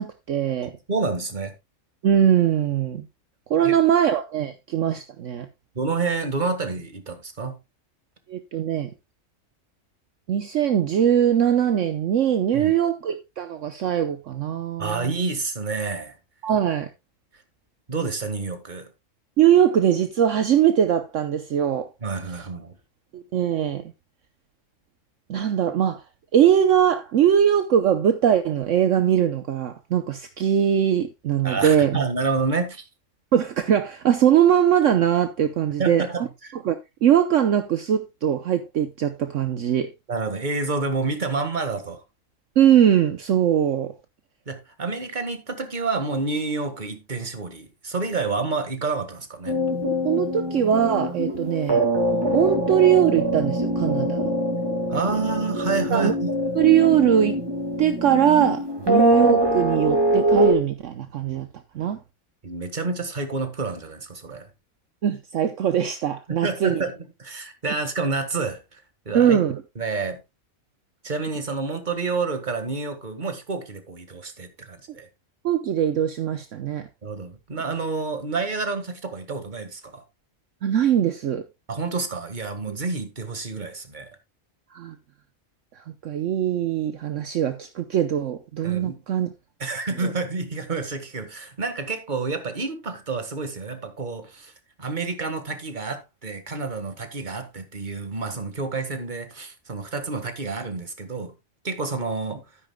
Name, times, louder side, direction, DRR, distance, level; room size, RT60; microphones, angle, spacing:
voice 1, 0.0-0.7 2.0-3.1 3.5-5.5 8.3-8.9 10.3-15.2 16.4-16.9 19.4-21.9 23.1-23.8 25.3-26.0 26.3-32.0 33.3-36.3 36.6-36.8 37.0-39.9 42.6-43.9 50.0-51.8 52.3-54.3 55.9-56.1 56.6-57.4 57.8-61.5 61.7-62.0 65.0-66.8 69.1-69.6 75.4-76.9 80.6-81.4 82.7-82.8 84.7-85.0 85.8-89.3 90.0-90.1, right 9 dB, 65° right, 1.1 m, -21 dB
voice 2, 0.6-1.6 3.6-3.8 5.8-7.6 12.5-12.7 14.8-16.2 17.3-17.4 17.9-18.9 22.0-22.8 31.4-32.9 35.8-36.5 40.1-42.0 44.5-49.6 54.9-56.3 58.8-58.9 62.4-64.5 66.4-69.4 69.8-70.2 71.0-75.1 77.0-80.0 81.7-84.1 88.6-89.0 89.6-94.5 94.8-101.3 101.6-102.5, right 4 dB, 35° right, 1.8 m, -29 dB
sound 1, 49.5-60.5, equal, 15° right, 2.1 m, -24 dB
12.5 x 10.0 x 2.2 m
omnidirectional pair, 1.4 m